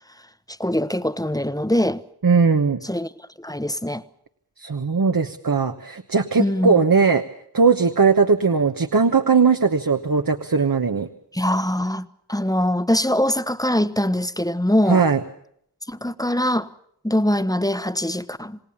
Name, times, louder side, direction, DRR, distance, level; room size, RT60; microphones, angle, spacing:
voice 1, 0.6-2.0 2.8-3.1 3.4-4.0 6.4-6.8 11.3-15.0 15.9-16.7 17.0-18.6, left 1 dB, 10° left, 0.9 m, -22 dB
voice 2, 2.2-2.8 4.6-7.2 7.5-11.1 14.9-15.2, right 5 dB, 60° right, 1.2 m, -19 dB
28.0 x 17.5 x 7.2 m
wide cardioid pair, 55°, 39 cm